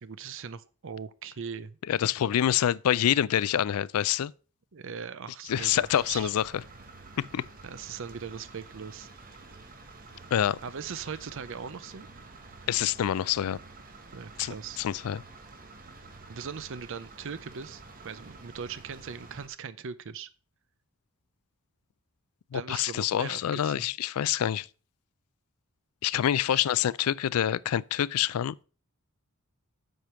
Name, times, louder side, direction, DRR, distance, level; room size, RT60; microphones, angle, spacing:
voice 1, 0.0-1.8 2.0-2.1 4.7-6.3 7.6-9.1 10.6-12.1 14.1-14.8 16.3-20.3 22.5-23.9 26.5-26.6, right 6 dB, 60° right, 0.6 m, -40 dB
voice 2, 1.9-4.3 5.5-6.5 7.2-7.5 10.3-10.6 12.7-13.6 14.4-15.2 22.5-24.7 26.0-28.5, left 10 dB, 80° left, 0.3 m, -26 dB
sound 1, 5.5-19.5, right 3 dB, 40° right, 1.2 m, -49 dB
7.9 x 5.1 x 5.7 m
head